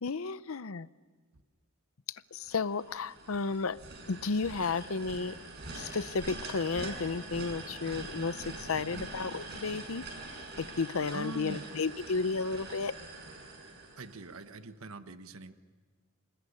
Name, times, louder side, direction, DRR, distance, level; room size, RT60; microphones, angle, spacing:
voice 1, 0.0-0.9 2.1-3.8 4.1-5.4 5.7-10.0 10.6-12.9, left 4 dB, 75° left, 15 dB, 0.7 m, -33 dB
sound 1, 2.4-14.5, right 2 dB, 50° right, 7.1 m, -44 dB
voice 2, 8.7-9.1 11.1-11.6 14.0-15.5, right 2 dB, 85° right, 9 dB, 1.4 m, -43 dB
27.0 x 20.5 x 10.0 m, 1.5 s
head